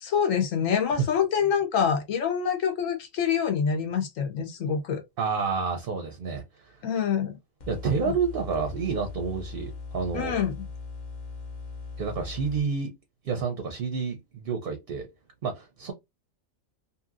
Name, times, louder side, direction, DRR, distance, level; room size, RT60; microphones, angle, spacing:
voice 1, 0.0-5.0 6.8-7.4 8.0-8.1 10.1-10.7, left 7 dB, 75° left, 1.1 m, -26 dB
voice 2, 5.2-6.8 7.7-10.3 12.0-12.9 13.2-15.1 15.4-15.9, right 5 dB, 55° right, 0.7 m, -29 dB
sound 1, 7.6-12.6, left 4 dB, 45° left, 0.6 m, -39 dB
2.8 x 2.8 x 2.4 m
omnidirectional pair, 1.4 m